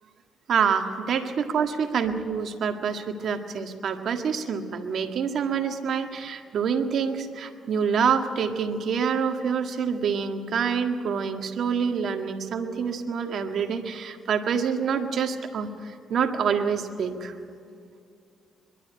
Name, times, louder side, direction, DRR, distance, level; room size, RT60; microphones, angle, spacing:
voice 1, 0.5-17.3, right 6 dB, 60° right, 6 dB, 1.8 m, -26 dB
22.0 x 12.5 x 9.9 m, 2.6 s
cardioid pair, 90°, 0 cm